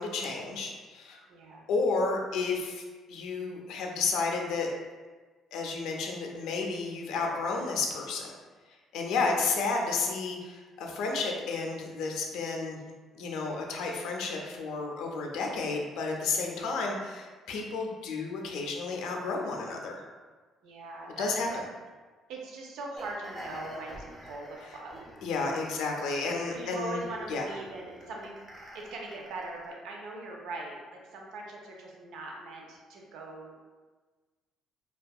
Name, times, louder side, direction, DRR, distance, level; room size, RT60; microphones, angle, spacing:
voice 1, 0.0-1.2 1.7-2.8 3.1-4.7 5.5-8.3 8.9-12.8 13.1-20.0 21.2-21.5 25.2-27.0 27.3-27.5, left 4 dB, 80° left, 1 dB, 0.4 m, -31 dB
voice 2, 1.3-1.7 20.6-21.6 22.3-25.0 26.5-28.4 28.7-33.5, right 2 dB, 80° right, 0 dB, 0.4 m, -41 dB
sound 1, 22.9-29.7, right 1 dB, 15° right, 0.4 m, -47 dB
2.6 x 2.2 x 2.2 m, 1.4 s
cardioid pair, 170°, 0 cm